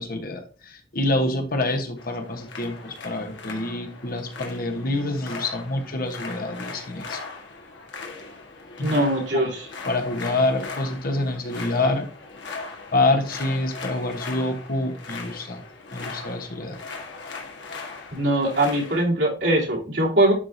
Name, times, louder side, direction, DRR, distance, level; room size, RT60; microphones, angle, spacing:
voice 1, 0.0-7.2 8.8-9.0 9.3-9.5 9.8-12.1 12.9-15.6 15.9-16.8, left 2 dB, 50° left, 5 dB, 1.2 m, -26 dB
sound 1, 2.0-19.0, left 4 dB, 70° left, 1.6 m, -39 dB
voice 2, 8.8-9.7 18.1-20.3, right 1 dB, 70° right, -4 dB, 3.3 m, -21 dB
11.5 x 4.8 x 2.7 m, 0.37 s
head